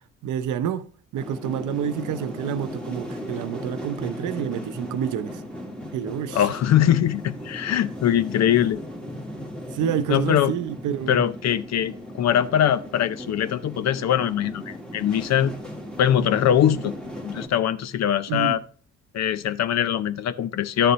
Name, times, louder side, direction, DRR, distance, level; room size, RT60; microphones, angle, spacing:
voice 1, 0.2-0.9 1.1-5.4 5.9-6.5 9.7-11.2 18.3-18.6, right 9 dB, 80° right, 0.7 m, -28 dB
sound 1, 1.2-17.5, equal, 5° left, 1.5 m, -37 dB
voice 2, 6.3-8.8 10.1-10.5 11.1-15.5 16.0-16.9 17.2-18.6 19.1-20.9, left 10 dB, 60° left, 0.6 m, -22 dB
11.0 x 6.8 x 3.1 m
cardioid pair, 90°, 30 cm